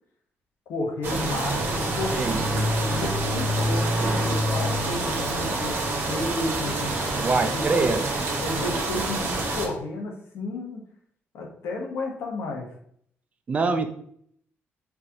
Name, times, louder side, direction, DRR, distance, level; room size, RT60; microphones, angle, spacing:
voice 1, 0.7-2.3 2.7-5.8 6.1-7.0 7.4-7.8 8.4-10.8 11.3-12.7, left 2 dB, 85° left, 1 dB, 1.1 m, -32 dB
sound 1, 1.0-9.7, right 1 dB, 55° right, 1.0 m, -26 dB
voice 2, 2.1-2.7 7.2-8.0 13.5-13.9, right 4 dB, 30° right, 6 dB, 0.4 m, -24 dB
4.7 x 2.6 x 2.8 m, 0.64 s
cardioid pair, 155°, 5 cm